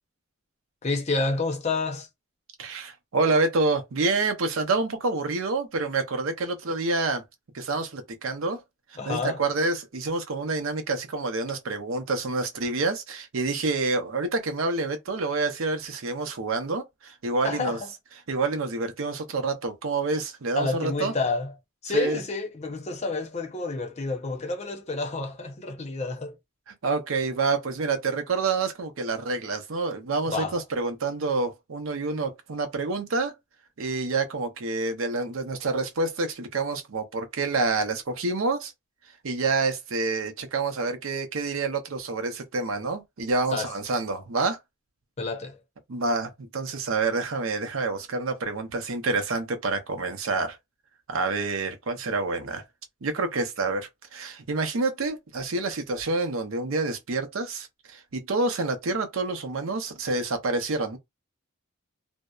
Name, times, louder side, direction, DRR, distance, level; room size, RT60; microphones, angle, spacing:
voice 1, 0.8-2.1 9.0-9.4 17.4-17.9 20.5-21.5 21.8-26.4 30.3-30.6 43.5-43.8 45.2-45.6, left 3 dB, 30° left, 0.6 m, -29 dB
voice 2, 2.6-7.2 7.5-8.6 9.1-17.8 18.3-21.1 21.9-22.2 26.8-33.4 33.8-38.7 39.2-44.6 45.9-50.6 51.1-52.6 53.0-61.0, right 3 dB, 80° right, 0.6 m, -28 dB
2.7 x 2.0 x 2.3 m
head